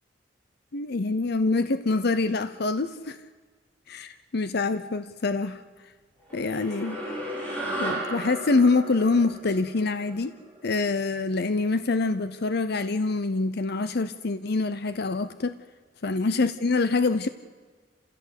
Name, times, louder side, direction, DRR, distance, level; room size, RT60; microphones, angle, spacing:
voice 1, 0.7-3.2 3.9-5.6 6.3-7.0 7.8-10.3 10.6-15.6 16.0-17.3, left 3 dB, 60° left, 12 dB, 0.8 m, -25 dB
sound 1, 6.3-11.0, right 1 dB, 10° left, 5.7 m, -35 dB
29.0 x 16.0 x 8.3 m, 1.4 s
head